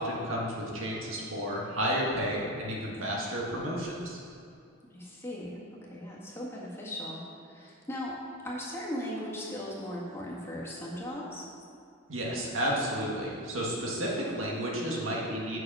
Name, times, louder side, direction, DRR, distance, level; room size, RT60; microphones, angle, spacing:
voice 1, 0.0-4.2 12.1-15.6, equal, 85° right, -3 dB, 1.7 m, -32 dB
voice 2, 4.9-8.2 8.4-11.5, equal, 15° left, -5 dB, 1.7 m, -38 dB
7.9 x 6.3 x 5.5 m, 2.4 s
head